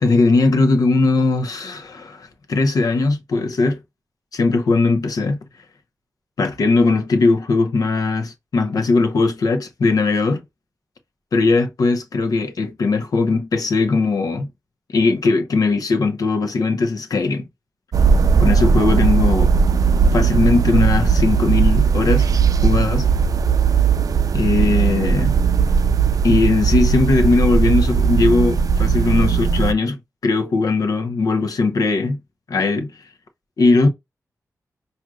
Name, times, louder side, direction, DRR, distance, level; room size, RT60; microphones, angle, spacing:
voice 1, 0.0-3.8 4.3-5.4 6.4-10.4 11.3-14.5 14.9-17.4 18.4-19.5 20.1-22.3 22.6-23.1 24.3-25.3 26.2-32.2 32.5-32.9 33.6-33.9, left 3 dB, 75° left, 0.8 m, -19 dB
sound 1, 17.9-29.7, right 6 dB, 75° right, 0.4 m, -17 dB
6.0 x 2.7 x 2.4 m
wide cardioid pair, 105°, 6 cm